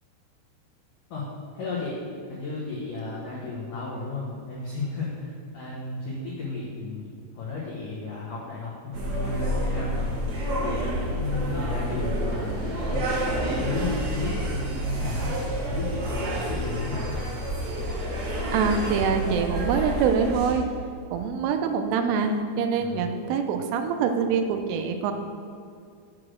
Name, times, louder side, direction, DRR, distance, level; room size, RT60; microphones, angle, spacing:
voice 1, 1.1-2.0 2.3-10.1 10.6-13.1 13.4-15.3 15.7-17.1 22.8-23.1, left 3 dB, 85° left, -6 dB, 1.8 m, -33 dB
sound 1, 8.9-20.5, right 1 dB, 60° right, 1.9 m, -29 dB
voice 2, 18.5-20.6 21.1-25.1, right 6 dB, 85° right, 6 dB, 3.1 m, -25 dB
8.2 x 4.9 x 6.2 m, 2.4 s
omnidirectional pair, 5.6 m